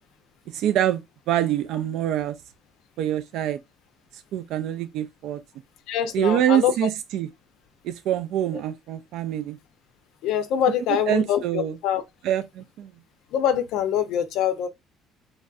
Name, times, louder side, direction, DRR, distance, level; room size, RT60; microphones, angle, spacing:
voice 1, 0.5-2.3 3.0-3.6 4.1-5.4 6.1-7.3 7.8-9.6 11.1-11.8 12.2-12.9, right 11 dB, 70° right, 0.3 m, -25 dB
voice 2, 5.9-6.7 8.5-8.6 10.2-12.0 13.3-14.7, left 9 dB, 75° left, 0.5 m, -24 dB
3.1 x 2.6 x 2.3 m
cardioid pair, 140°, 0 cm